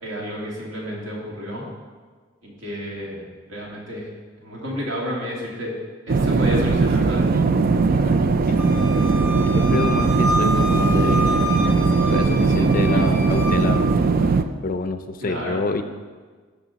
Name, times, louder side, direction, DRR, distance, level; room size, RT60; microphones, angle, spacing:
voice 1, 0.0-1.7 2.4-3.2 3.5-4.1 4.4-5.7 6.2-7.3 15.2-15.6, equal, 70° right, -3 dB, 2.2 m, -30 dB
sound 1, 6.1-14.4, right 4 dB, 50° right, 0.4 m, -19 dB
voice 2, 8.0-8.7 9.5-11.5 11.9-13.9 14.6-15.8, left 3 dB, 45° left, 9 dB, 0.5 m, -28 dB
Wind instrument woodwind instrument, 8.6-13.8, equal, 10° right, 1.1 m, -28 dB
12.0 x 5.1 x 4.0 m, 1.5 s
head